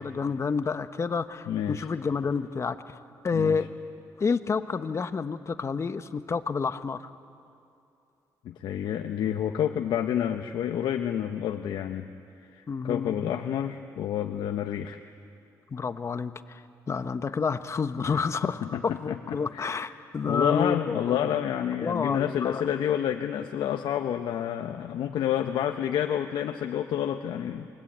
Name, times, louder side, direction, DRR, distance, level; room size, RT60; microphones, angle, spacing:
voice 1, 0.0-3.0 3.2-3.7 4.2-7.1 12.7-13.1 15.7-21.3 21.7-22.6, left 5 dB, 40° left, 10 dB, 1.1 m, -29 dB
voice 2, 1.5-1.9 3.3-3.6 8.4-12.1 12.4-15.0 18.1-19.8 20.2-27.7, left 10 dB, 80° left, 5 dB, 1.0 m, -29 dB
28.0 x 22.5 x 8.8 m, 2.6 s
cardioid pair, 95°, 8 cm